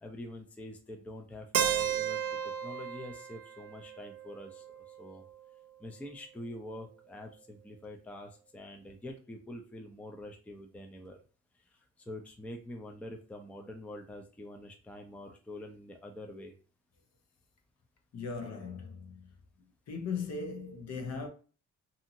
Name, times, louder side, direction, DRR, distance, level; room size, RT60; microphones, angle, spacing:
voice 1, 0.0-5.2 5.8-11.2 11.6-11.8 12.1-16.5, left 1 dB, 5° left, 0.5 m, -46 dB
Keyboard (musical), 1.5-5.4, right 9 dB, 55° right, 0.4 m, -34 dB
voice 2, 18.1-19.3 19.9-21.3, left 5 dB, 60° left, 0.8 m, -38 dB
2.7 x 2.6 x 2.6 m
cardioid pair, 90°, 30 cm